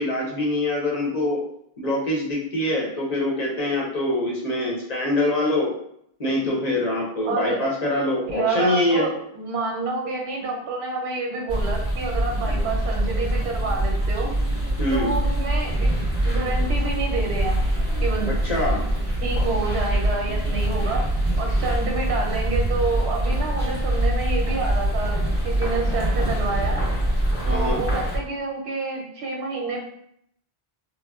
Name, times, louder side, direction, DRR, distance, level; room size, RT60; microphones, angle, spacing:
voice 1, 0.0-1.4 1.8-5.7 6.2-9.1 14.8-15.1 18.2-18.8 27.4-27.8, left 1 dB, 45° left, -4 dB, 0.7 m, -24 dB
voice 2, 7.3-7.6 8.3-14.3 14.9-15.9 16.2-18.3 19.2-21.1 21.4-26.8 27.5-29.8, right 3 dB, 90° right, 0 dB, 0.9 m, -28 dB
sound 1, 11.5-28.2, right 1 dB, 15° left, 0.9 m, -24 dB
3.6 x 2.0 x 2.2 m, 0.72 s
omnidirectional pair, 1.1 m